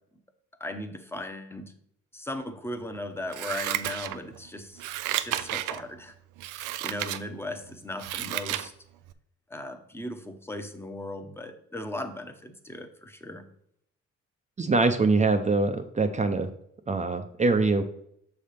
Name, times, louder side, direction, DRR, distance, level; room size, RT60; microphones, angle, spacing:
voice 1, 0.6-1.7 2.1-4.8 5.2-6.1 6.5-8.7 9.5-13.5, left 1 dB, 10° left, 6 dB, 0.8 m, -37 dB
Scissors, 3.3-4.4 4.8-5.8 6.4-7.2 7.7-8.7 9.1-9.2, right 13 dB, 90° right, 0.5 m, -32 dB
voice 2, 14.6-16.5 16.9-17.8, right 3 dB, 25° right, 7 dB, 0.5 m, -23 dB
6.4 x 3.4 x 5.6 m, 0.73 s
cardioid pair, 90°, 30 cm